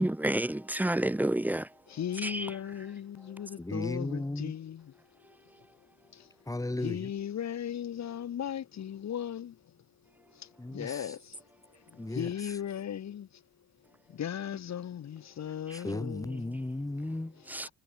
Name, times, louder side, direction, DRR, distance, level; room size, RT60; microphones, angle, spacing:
voice 1, 0.0-1.7 2.2-2.5 15.7-15.8 17.5-17.7, right 1 dB, 5° right, 1.5 m, -29 dB
voice 2, 1.9-5.0 6.1-6.3 6.8-9.7 10.3-11.4 11.9-13.4 14.1-16.6 17.3-17.7, left 9 dB, 65° left, 6.5 m, -37 dB
voice 3, 3.6-4.5 6.5-7.1 10.6-11.1 12.0-12.3 15.7-17.4, left 2 dB, 10° left, 5.7 m, -35 dB
cardioid pair, 90°, 30 cm